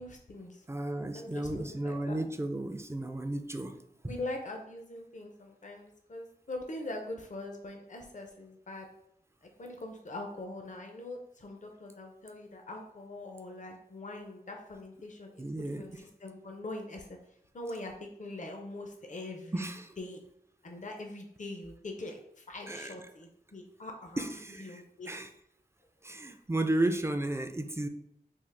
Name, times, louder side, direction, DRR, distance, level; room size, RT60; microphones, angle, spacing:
voice 1, 0.0-0.7 1.1-2.2 4.1-8.9 9.6-15.5 15.8-15.9 16.2-17.1 17.5-19.7 20.0-20.2 20.6-24.3 24.6-25.2, left 2 dB, 50° left, 2 dB, 0.5 m, -42 dB
voice 2, 0.7-3.8 4.0-4.1 15.4-15.9 19.5-19.9 22.7-23.0 24.2-25.3 26.0-27.9, right 1 dB, 15° right, 7 dB, 0.4 m, -33 dB
3.6 x 2.4 x 3.3 m, 0.77 s
wide cardioid pair, 45°, 17 cm